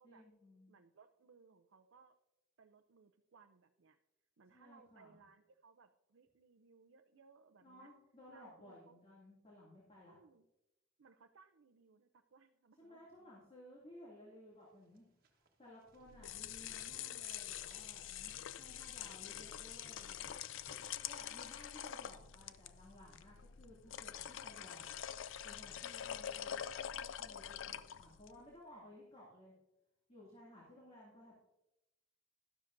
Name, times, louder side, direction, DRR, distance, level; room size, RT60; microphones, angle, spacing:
voice 1, 0.0-0.7 4.5-5.2 7.6-10.2 12.8-15.0 15.6-20.3 21.0-25.0 25.4-29.5 30.1-31.4, left 1 dB, 30° left, -6 dB, 2.5 m, -58 dB
voice 2, 0.7-2.2 2.6-4.0 4.4-7.9 8.3-9.0 10.1-10.5 11.0-13.4 27.6-28.0, right 5 dB, 75° right, 6 dB, 0.5 m, -65 dB
sound 1, 14.4-22.7, right 5 dB, 50° right, 1.3 m, -73 dB
sound 2, 16.0-28.4, left 10 dB, 70° left, 0.4 m, -46 dB
Tap, 16.6-21.9 24.5-24.6, right 1 dB, 30° right, 1.2 m, -67 dB
12.0 x 12.0 x 2.6 m, 0.93 s
head